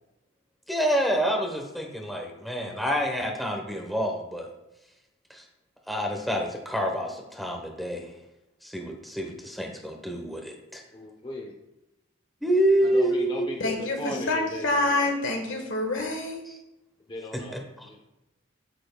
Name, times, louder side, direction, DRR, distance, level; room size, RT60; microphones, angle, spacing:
voice 1, 0.7-4.5 5.3-5.4 5.9-8.1 8.6-10.8 12.4-13.6 14.0-14.3 16.4-16.6 17.5-17.9, right 1 dB, ahead, 1 dB, 1.0 m, -27 dB
voice 2, 10.9-11.5 12.9-15.1 17.1-18.0, left 2 dB, 25° left, 1 dB, 0.7 m, -37 dB
voice 3, 13.6-16.4, left 2 dB, 80° left, 3 dB, 1.4 m, -27 dB
8.9 x 7.6 x 2.3 m, 0.96 s
head